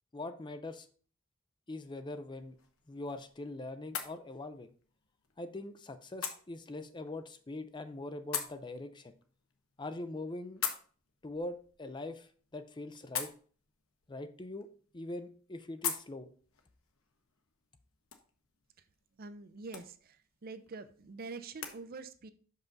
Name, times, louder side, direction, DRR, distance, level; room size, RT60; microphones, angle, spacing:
voice 1, 0.1-0.9 1.7-2.6 2.9-4.7 5.4-9.1 9.8-10.6 11.2-13.3 14.1-14.7 14.9-16.3, left 2 dB, 20° left, 10 dB, 0.5 m, -42 dB
sound 1, 2.3-21.8, left 8 dB, 80° left, 1.0 m, -45 dB
voice 2, 19.2-22.3, right 3 dB, 45° right, 12 dB, 0.5 m, -46 dB
5.9 x 5.5 x 3.9 m, 0.42 s
head